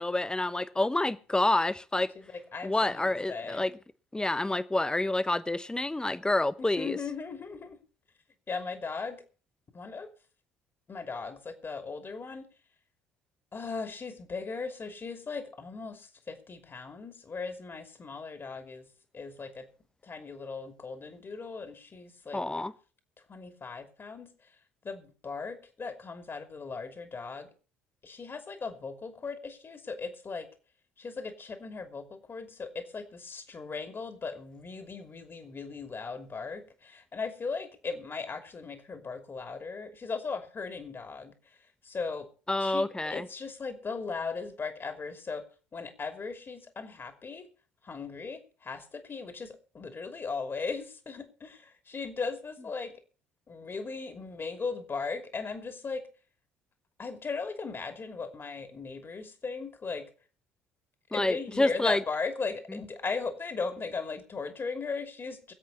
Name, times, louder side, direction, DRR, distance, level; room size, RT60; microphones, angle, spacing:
voice 1, 0.0-2.1 2.6-3.7 4.1-7.0 22.3-22.7 42.5-43.3 61.1-62.0, left 2 dB, 10° left, 0.9 m, -28 dB
voice 2, 2.2-3.6 6.6-7.8 8.5-9.2 9.7-10.1 10.9-12.5 13.5-18.9 19.1-19.7 20.0-22.4 23.3-24.5 24.8-27.5 28.0-30.5 31.0-41.6 41.8-42.3 42.6-45.4 45.7-47.5 47.8-53.0 53.5-56.0 57.0-60.1 61.1-65.5, left 4 dB, 30° left, 2.9 m, -38 dB
23.5 x 8.1 x 4.2 m
figure-of-eight pair, 55°, 7 cm